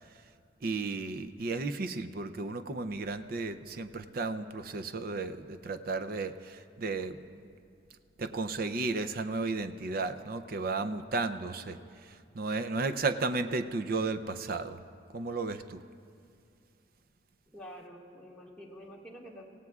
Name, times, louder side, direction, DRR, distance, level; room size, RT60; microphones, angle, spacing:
voice 1, 0.6-7.5 8.2-11.8 12.0-14.8 15.1-15.8, right 3 dB, 55° right, 11 dB, 0.6 m, -34 dB
voice 2, 17.5-19.5, equal, 5° left, -5 dB, 1.8 m, -48 dB
26.5 x 16.5 x 2.4 m, 2.3 s
head